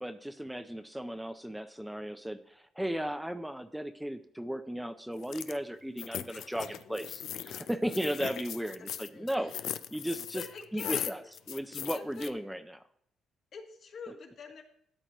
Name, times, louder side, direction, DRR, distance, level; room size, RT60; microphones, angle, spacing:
voice 1, 0.0-9.5 9.9-10.4 10.7-11.2 11.5-12.8, equal, 5° right, 8 dB, 0.5 m, -35 dB
sound 1, 5.2-5.6 6.0-12.3, left 10 dB, 75° left, 0.4 m, -39 dB
voice 2, 8.0-8.3 8.8-9.6 10.3-11.3 11.9-12.3 13.5-14.6, left 5 dB, 60° left, 3 dB, 1.4 m, -46 dB
12.5 x 7.5 x 3.0 m, 0.70 s
cardioid pair, 90°, 0 cm